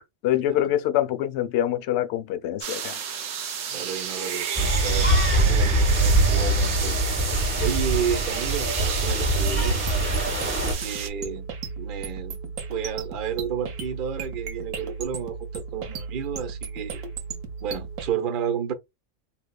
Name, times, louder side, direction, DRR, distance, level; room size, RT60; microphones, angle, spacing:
voice 1, 0.2-3.0, left 12 dB, 65° left, 0.8 m, -25 dB
sound 1, 2.6-11.1, right 7 dB, 65° right, 1.0 m, -31 dB
voice 2, 3.7-9.8 10.4-11.5 11.8-17.0 17.6-18.7, right 8 dB, 45° right, 0.8 m, -32 dB
sound 2, 4.6-10.7, right 1 dB, 10° right, 1.0 m, -23 dB
sound 3, 9.5-18.1, right 5 dB, 85° right, 1.3 m, -35 dB
3.9 x 2.8 x 2.2 m
omnidirectional pair, 1.5 m